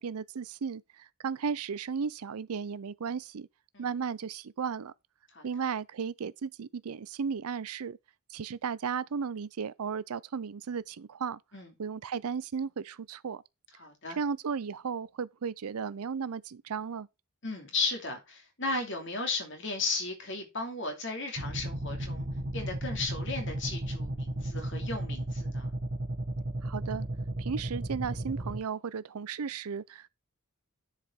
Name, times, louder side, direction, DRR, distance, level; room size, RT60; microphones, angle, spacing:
voice 1, 0.0-3.5 3.8-4.9 5.4-8.0 8.3-11.4 11.8-13.4 14.2-17.1 26.6-27.1 27.4-30.1, right 6 dB, 80° right, 0.5 m, -35 dB
voice 2, 13.8-14.2 17.4-22.3 22.5-25.7, left 3 dB, 55° left, 2.6 m, -35 dB
sound 1, 21.4-28.6, right 1 dB, 50° right, 1.2 m, -34 dB
10.0 x 4.9 x 4.6 m
head